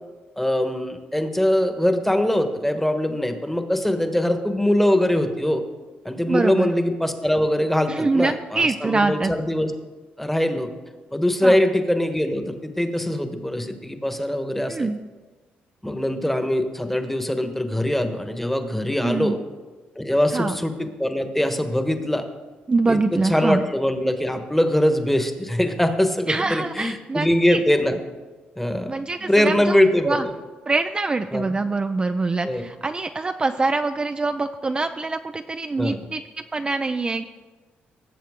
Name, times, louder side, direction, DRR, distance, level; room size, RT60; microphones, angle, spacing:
voice 1, 0.4-5.6 6.0-9.7 10.2-10.7 11.1-14.9 15.8-19.4 20.0-22.2 22.9-23.0 23.2-28.0 28.6-30.3 31.3-31.5 32.4-32.7 35.8-36.0, left 1 dB, 5° left, 7 dB, 1.2 m, -22 dB
voice 2, 6.3-6.7 7.9-9.3 11.4-11.6 14.7-15.0 19.0-19.4 20.3-20.5 22.7-23.6 26.3-27.6 28.9-29.8 30.0-30.3 30.7-36.2 36.5-37.3, right 3 dB, 25° right, 7 dB, 0.5 m, -24 dB
18.5 x 7.4 x 3.7 m, 1.3 s
cardioid pair, 80°, 4 cm